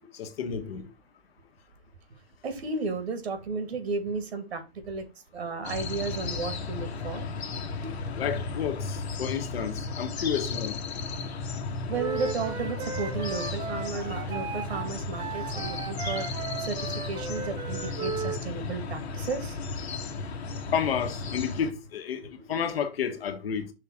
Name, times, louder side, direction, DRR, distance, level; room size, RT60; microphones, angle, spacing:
voice 1, 0.1-0.8 8.2-10.8 20.7-23.7, left 8 dB, 65° left, 1.5 m, -31 dB
voice 2, 2.4-5.0 5.3-7.3 7.8-8.0 11.9-16.8 17.1-19.6 22.5-22.6, right 4 dB, 80° right, 2.4 m, -33 dB
sound 1, 5.6-21.7, left 4 dB, 90° left, 1.5 m, -34 dB
Wind instrument woodwind instrument, 11.9-18.4, right 6 dB, 15° right, 0.5 m, -36 dB
5.9 x 3.7 x 5.8 m
hypercardioid pair, 150°, 31 cm